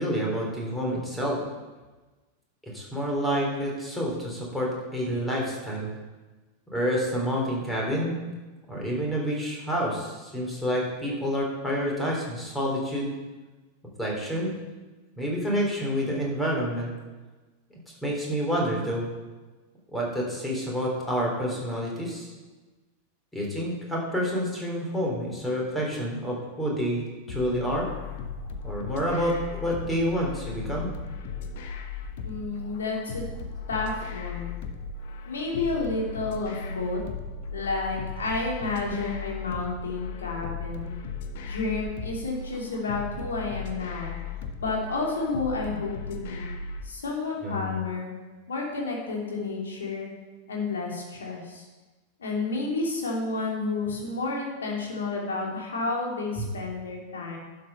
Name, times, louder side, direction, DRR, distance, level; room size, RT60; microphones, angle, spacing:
voice 1, 0.0-1.4 2.6-5.9 6.7-8.2 8.7-13.1 14.0-14.5 15.2-16.9 18.0-19.1 19.9-22.3 23.3-27.9 28.6-30.9 47.4-47.7 56.4-56.5, equal, 5° left, -2 dB, 3.7 m, -28 dB
sound 1, 27.3-46.9, left 4 dB, 50° left, 1.0 m, -37 dB
voice 2, 32.2-33.2 33.7-34.6 35.2-37.0 37.5-41.0 41.4-44.2 44.6-46.5 46.8-48.1 48.5-50.1 50.5-51.6 52.2-57.4, left 3 dB, 70° left, -2 dB, 2.8 m, -31 dB
11.5 x 6.7 x 5.5 m, 1.2 s
figure-of-eight pair, 90°, 0 cm